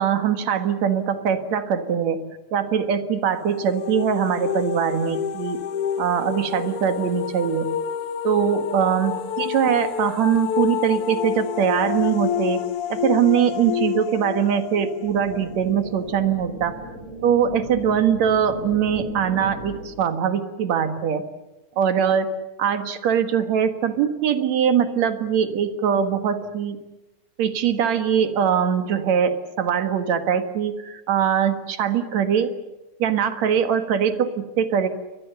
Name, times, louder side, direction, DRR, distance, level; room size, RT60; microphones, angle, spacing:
voice 1, 0.0-5.6 6.0-7.8 8.2-12.6 12.9-16.8 17.2-21.3 21.8-22.3 22.6-26.8 27.4-32.5 33.0-34.9, right 8 dB, 70° right, 8 dB, 2.9 m, -22 dB
sound 1, 3.3-16.1, left 9 dB, 65° left, 1.6 m, -29 dB
sound 2, 15.1-20.1, right 1 dB, 45° right, 5.1 m, -36 dB
29.5 x 23.0 x 6.9 m, 1.0 s
omnidirectional pair, 3.4 m